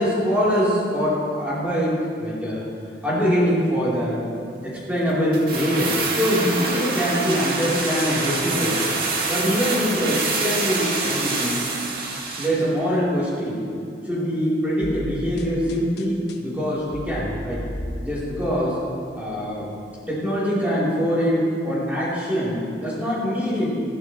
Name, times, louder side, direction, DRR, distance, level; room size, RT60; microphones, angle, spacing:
voice 1, 0.0-2.6 3.0-4.2 4.6-8.8 9.3-11.7 12.4-13.6 14.0-17.6 18.0-18.8 19.1-19.7 20.1-23.8, equal, 10° right, -10 dB, 4.3 m, -23 dB
sound 1, 5.3-12.6 12.9-13.0, right 3 dB, 55° right, 2.5 m, -26 dB
sound 2, 14.8-18.5, left 1 dB, 70° left, 1.3 m, -34 dB
22.0 x 15.5 x 3.4 m, 2.5 s
head